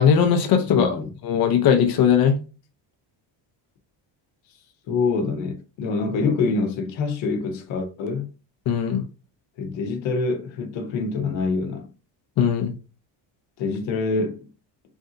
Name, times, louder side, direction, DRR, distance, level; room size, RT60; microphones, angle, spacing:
voice 1, 0.0-2.3 8.7-9.0 12.4-12.7, left 7 dB, 55° left, 0.8 m, -19 dB
voice 2, 0.7-1.1 4.9-8.3 9.6-11.9 13.6-14.5, left 4 dB, 85° left, 0.9 m, -25 dB
3.5 x 2.6 x 3.8 m
cardioid pair, 155°, 45 cm